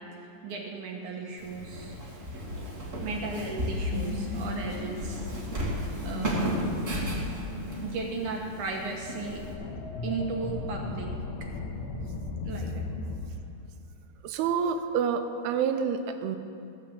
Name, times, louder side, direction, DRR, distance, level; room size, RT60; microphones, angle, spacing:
voice 1, 0.2-2.0 3.0-5.4 6.0-6.6 7.8-9.4 10.0-11.1 11.4-11.5 12.4-12.9, right 4 dB, 65° right, 1 dB, 2.1 m, -36 dB
Walk footsteps, 1.4-9.5, equal, 40° right, 1.1 m, -34 dB
sound 1, 3.9-13.2, left 3 dB, 65° left, 2.0 m, -37 dB
voice 2, 14.2-16.4, right 6 dB, 85° right, 8 dB, 2.5 m, -28 dB
14.0 x 7.3 x 7.4 m, 2.8 s
omnidirectional pair, 4.6 m